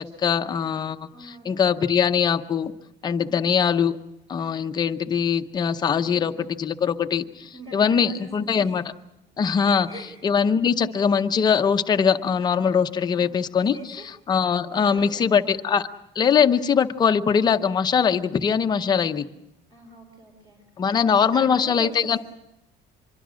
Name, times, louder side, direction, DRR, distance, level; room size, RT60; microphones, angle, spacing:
voice 1, 0.0-2.7 3.0-4.0 4.3-8.8 9.4-9.9 10.2-13.8 14.3-15.9 16.1-19.3 20.8-22.2, left 7 dB, 25° left, 8 dB, 0.8 m, -22 dB
voice 2, 1.1-1.6 3.2-3.5 5.9-6.4 7.5-8.8 9.8-10.2 13.1-13.4 13.7-14.1 14.7-15.5 19.7-22.2, right 2 dB, 30° right, 2 dB, 3.2 m, -43 dB
25.5 x 22.5 x 6.3 m, 0.88 s
cardioid pair, 175°, 17 cm